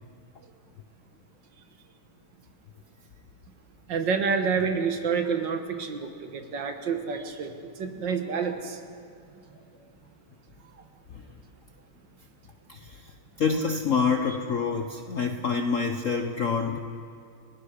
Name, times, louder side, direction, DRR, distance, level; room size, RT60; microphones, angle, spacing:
voice 1, 3.9-8.8, right 5 dB, 60° right, 6 dB, 1.9 m, -28 dB
voice 2, 12.7-16.8, left 5 dB, 55° left, 6 dB, 0.9 m, -27 dB
29.5 x 18.5 x 5.0 m, 2.4 s
omnidirectional pair, 2.4 m